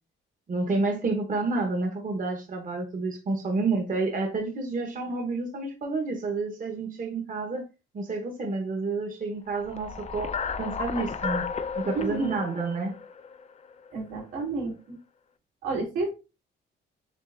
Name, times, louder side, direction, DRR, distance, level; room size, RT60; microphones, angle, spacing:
voice 1, 0.5-7.6 7.9-10.3 10.6-11.4 11.8-12.9, right 3 dB, 40° right, 2 dB, 1.1 m, -29 dB
sound 1, 9.6-13.9, left 6 dB, 35° left, 0.5 m, -33 dB
voice 2, 11.9-12.4 13.9-15.0 15.6-16.1, right 3 dB, 90° right, -3 dB, 2.6 m, -30 dB
7.4 x 2.5 x 2.5 m, 0.29 s
cardioid pair, 90°, 20 cm